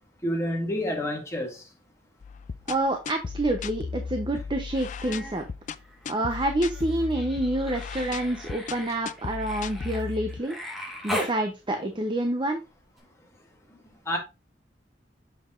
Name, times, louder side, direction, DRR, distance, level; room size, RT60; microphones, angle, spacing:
voice 1, 0.2-1.6 14.1-14.2, equal, 15° left, 2.0 m, -28 dB
sound 1, 2.2-10.4, left 5 dB, 45° left, 0.4 m, -36 dB
voice 2, 2.7-5.4 6.1-10.6 11.0-12.6, right 1 dB, 25° right, 0.7 m, -28 dB
Human voice, 4.7-5.5 5.8-11.4 13.0-13.1, equal, ahead, 1.9 m, -38 dB
6.9 x 5.8 x 2.5 m
head